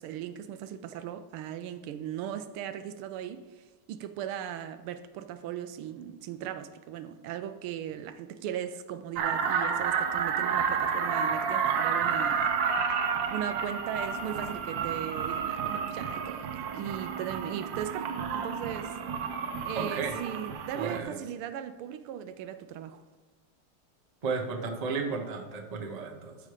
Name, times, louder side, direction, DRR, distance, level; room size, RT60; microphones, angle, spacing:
voice 1, 0.0-3.5 3.9-12.5 13.3-18.9 19.6-23.0, right 10 dB, 85° right, 1.5 m, -38 dB
sound 1, 9.2-21.0, right 6 dB, 70° right, 1.4 m, -30 dB
voice 2, 19.7-20.2 20.7-21.2 24.2-26.4, right 4 dB, 50° right, 0.4 m, -33 dB
13.0 x 5.1 x 4.9 m
omnidirectional pair, 2.3 m